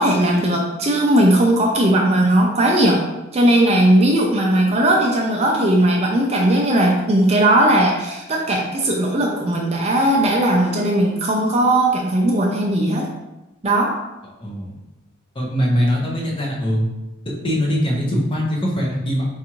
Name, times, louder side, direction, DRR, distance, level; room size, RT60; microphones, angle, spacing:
voice 1, 0.0-3.0 3.3-13.1 13.6-13.9, right 1 dB, 30° right, 0 dB, 0.4 m, -17 dB
voice 2, 14.4-14.7 15.3-16.9 17.2-19.3, equal, 25° left, -3 dB, 0.7 m, -21 dB
4.6 x 2.5 x 2.9 m, 1.0 s
head